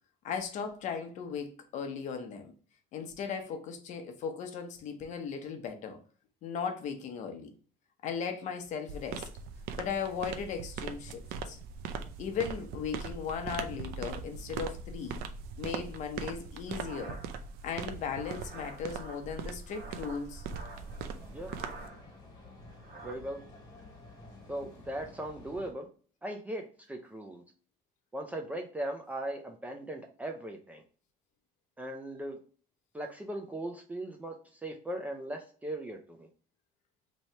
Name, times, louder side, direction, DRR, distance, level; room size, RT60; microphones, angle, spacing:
voice 1, 0.2-2.5 2.9-6.0 6.4-7.5 8.0-9.3 9.8-11.6 12.2-15.2 15.6-17.2 17.6-20.5, left 6 dB, 50° left, 0.7 m, -37 dB
sound 1, 8.9-21.9, right 6 dB, 90° right, 0.5 m, -41 dB
sound 2, 16.7-21.0 21.4-22.2 22.5-23.2, right 2 dB, 50° right, 1.1 m, -49 dB
sound 3, 20.6-25.7, left 2 dB, 20° left, 1.4 m, -52 dB
voice 2, 23.0-23.4 24.5-25.9 26.2-27.4 28.1-30.8 31.8-32.4 32.9-36.3, right 1 dB, 10° right, 0.4 m, -38 dB
3.1 x 2.7 x 4.2 m
cardioid pair, 175°, 16 cm